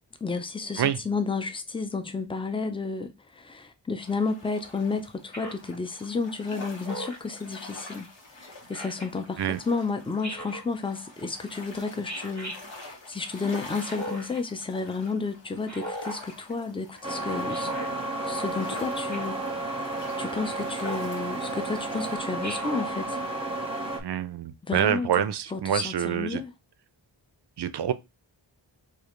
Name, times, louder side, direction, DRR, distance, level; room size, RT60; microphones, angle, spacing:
voice 1, 0.2-8.1 8.4-17.7 18.2-19.8 20.2-23.2 24.6-26.5, left 4 dB, 10° left, 0.5 m, -32 dB
sound 1, 4.0-22.2, left 2 dB, 80° left, 1.2 m, -46 dB
Speech synthesizer, 5.3-5.7 6.8-7.3 8.7-9.1 10.2-10.7 12.0-12.6 13.8-14.4 15.6-16.2 17.5-17.9 19.1-19.4 20.8-21.1 22.4-22.9, equal, 40° left, 1.7 m, -37 dB
sound 2, 17.0-24.0, right 2 dB, 15° right, 0.8 m, -32 dB
voice 2, 24.0-26.4 27.6-27.9, right 9 dB, 65° right, 0.5 m, -26 dB
4.8 x 2.4 x 3.1 m
wide cardioid pair, 65°, 44 cm